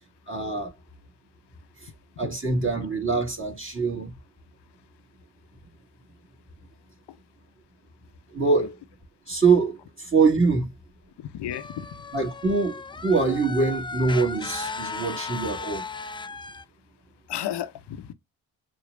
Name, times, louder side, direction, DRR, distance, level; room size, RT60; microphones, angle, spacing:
voice 1, 0.3-0.7 2.2-4.1 8.3-8.8 9.3-10.7 12.1-15.8, right 4 dB, 25° right, 2.2 m, -24 dB
voice 2, 11.2-11.9 17.3-18.1, left 11 dB, 55° left, 0.8 m, -33 dB
sound 1, 11.5-16.6, left 4 dB, 10° left, 0.3 m, -36 dB
6.9 x 2.6 x 2.4 m
hypercardioid pair, 45°, 48 cm